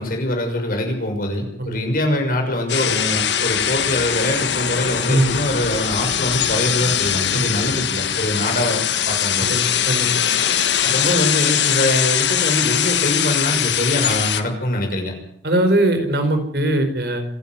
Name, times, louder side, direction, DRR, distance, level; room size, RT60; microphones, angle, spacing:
voice 1, 0.0-9.5 10.8-15.1, left 1 dB, 50° left, 3 dB, 6.3 m, -23 dB
sound 1, 2.7-14.4, left 9 dB, 80° left, 1.6 m, -21 dB
sound 2, 9.9-10.0 10.2-10.5 10.8-11.2 13.2-14.2, right 1 dB, 5° right, 3.0 m, -36 dB
voice 2, 9.9-10.3 15.4-17.2, right 1 dB, 60° right, 6 dB, 4.5 m, -20 dB
26.5 x 11.5 x 9.6 m, 0.71 s
head